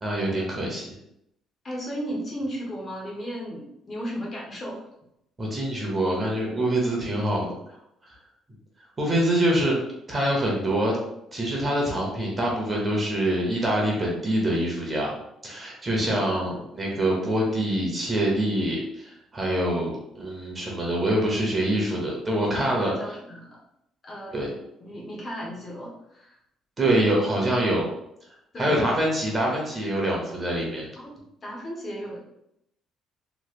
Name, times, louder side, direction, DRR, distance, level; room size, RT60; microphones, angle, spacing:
voice 1, 0.0-1.0 5.4-7.5 9.0-9.8 10.1-11.0 11.3-15.1 15.4-22.9 24.3-24.5 26.8-27.8 28.6-30.9, right 1 dB, 25° right, -2 dB, 0.9 m, -25 dB
voice 2, 1.6-4.8 22.5-23.6 24.0-24.3 24.8-26.4 28.5-28.9 31.0-32.2, equal, 30° left, -3 dB, 0.9 m, -35 dB
3.1 x 3.0 x 2.4 m, 0.79 s
cardioid pair, 135°, 0 cm